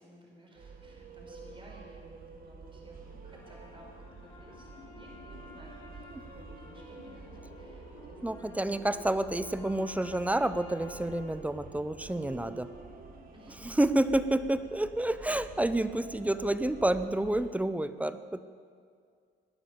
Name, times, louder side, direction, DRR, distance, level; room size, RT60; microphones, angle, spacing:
voice 1, 0.0-3.9 4.2-8.8 13.3-13.8, equal, 25° right, -1 dB, 4.7 m, -56 dB
sound 1, 0.5-17.5, right 4 dB, 45° right, 1.8 m, -49 dB
sound 2, 2.8-13.9, left 3 dB, 70° left, 3.5 m, -54 dB
sound 3, 3.3-11.3, left 4 dB, 20° left, 2.4 m, -55 dB
voice 2, 8.2-12.7 13.6-18.4, right 1 dB, 5° right, 13 dB, 0.6 m, -29 dB
18.0 x 10.5 x 7.1 m, 2.2 s
cardioid pair, 90°, 20 cm